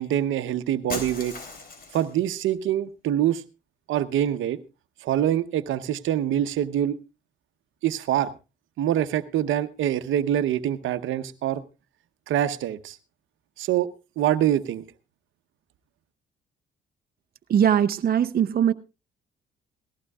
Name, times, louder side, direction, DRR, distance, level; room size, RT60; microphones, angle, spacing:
voice 1, 0.0-1.3 1.9-3.4 3.9-4.6 5.0-7.0 7.8-8.3 8.8-11.6 12.3-13.0 13.6-13.9 14.2-14.8, right 11 dB, 80° right, 0.9 m, -25 dB
Shatter, 0.9-2.2, left 3 dB, 50° left, 3.6 m, -36 dB
voice 2, 17.5-18.7, right 9 dB, 50° right, 0.7 m, -20 dB
18.5 x 15.0 x 2.4 m
cardioid pair, 90°, 20 cm